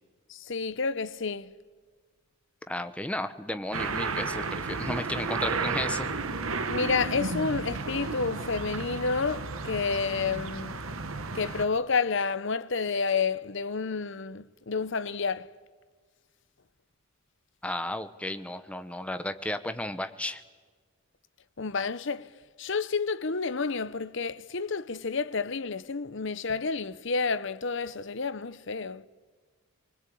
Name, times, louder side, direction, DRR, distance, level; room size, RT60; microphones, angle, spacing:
voice 1, 0.3-1.5 6.7-10.8 11.3-15.5 21.6-22.3 22.6-29.0, left 4 dB, 60° left, 0.8 m, -30 dB
voice 2, 2.7-6.1 17.6-20.4, left 1 dB, 5° left, 0.9 m, -33 dB
sound 1, 3.7-11.7, right 4 dB, 75° right, 1.3 m, -33 dB
25.5 x 20.5 x 8.6 m
head